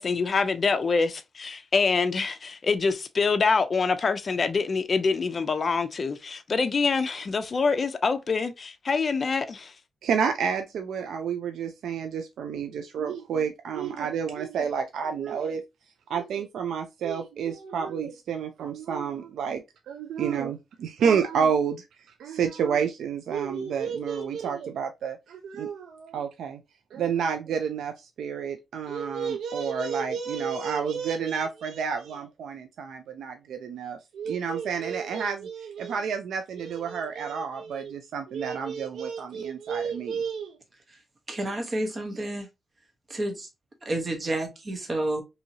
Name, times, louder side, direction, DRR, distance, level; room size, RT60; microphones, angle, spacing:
voice 1, 0.0-9.7, left 4 dB, 40° left, 0.4 m, -25 dB
voice 2, 10.0-15.6 16.1-26.6 26.9-40.6, right 6 dB, 85° right, 0.3 m, -29 dB
voice 3, 41.3-42.5 43.1-43.5 43.8-45.2, right 1 dB, 35° right, 0.8 m, -30 dB
2.7 x 2.7 x 2.7 m
cardioid pair, 95°, 0 cm